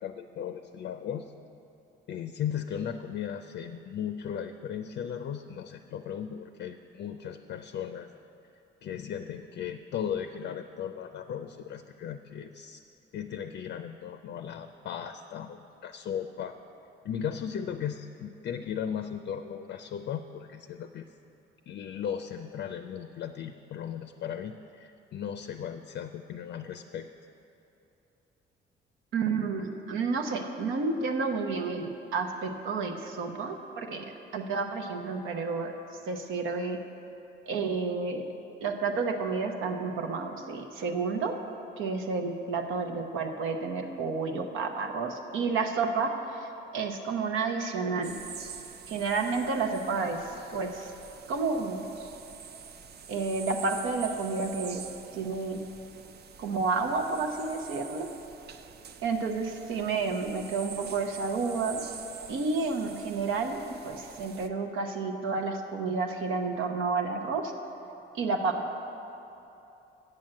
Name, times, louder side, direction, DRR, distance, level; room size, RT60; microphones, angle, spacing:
voice 1, 0.0-1.3 2.1-8.1 8.8-12.8 13.1-16.5 17.0-21.1 21.7-27.1, left 8 dB, 60° left, 8 dB, 0.4 m, -36 dB
voice 2, 29.1-35.7 36.1-36.8 37.5-38.2 38.6-41.3 41.8-48.1 48.9-50.2 50.5-50.9 51.3-51.8 53.1-54.8 55.1-55.6 56.4-58.1 59.0-61.8 62.3-67.5 68.1-68.6, right 4 dB, 85° right, 4 dB, 0.9 m, -30 dB
sound 1, 48.0-64.5, right 7 dB, 55° right, 0.5 m, -46 dB
7.7 x 7.4 x 7.6 m, 2.9 s
cardioid pair, 90°, 20 cm